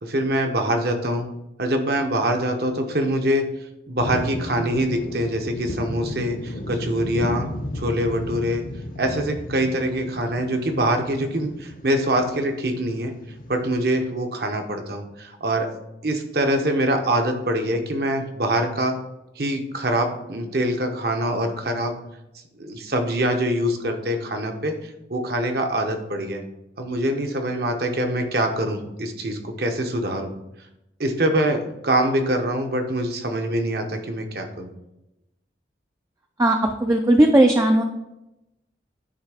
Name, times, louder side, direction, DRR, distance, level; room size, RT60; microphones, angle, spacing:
voice 1, 0.0-1.3 1.6-3.5 3.9-7.5 7.7-8.6 9.0-13.1 13.5-15.7 16.0-19.0 19.4-22.0 22.6-26.4 26.8-30.3 31.0-34.7, right 1 dB, 55° right, 4 dB, 0.9 m, -24 dB
sound 1, 4.0-14.0, left 1 dB, 45° left, 0.7 m, -34 dB
voice 2, 36.4-37.8, right 1 dB, 15° right, 3 dB, 0.4 m, -17 dB
9.7 x 3.3 x 4.8 m, 0.90 s
head